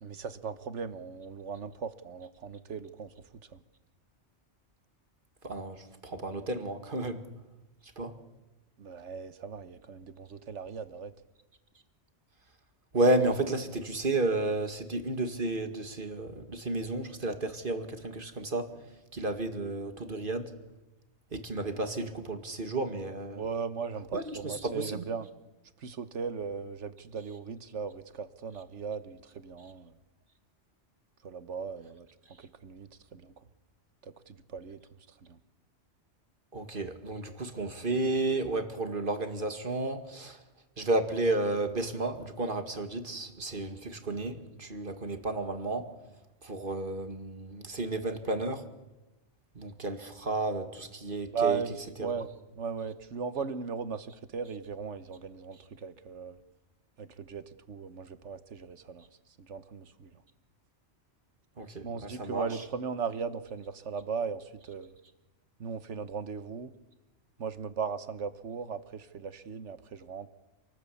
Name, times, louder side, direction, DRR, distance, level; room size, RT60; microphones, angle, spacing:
voice 1, 0.0-3.1 3.5-3.6 8.8-11.1 23.3-25.3 25.8-29.9 31.2-33.3 34.0-34.8 35.2-35.4 51.3-52.3 52.6-56.4 57.0-59.1 59.4-60.1 61.8-64.9 65.6-66.7 67.4-70.3, right 6 dB, 85° right, 12 dB, 1.5 m, -37 dB
voice 2, 5.4-7.3 8.0-8.1 12.9-20.5 21.3-23.4 24.1-25.0 36.5-40.4 40.8-45.9 46.4-48.7 49.5-51.6 52.0-52.1 61.6-62.5, right 2 dB, 45° right, 7 dB, 2.2 m, -32 dB
28.0 x 19.5 x 8.5 m, 1.1 s
omnidirectional pair, 1.2 m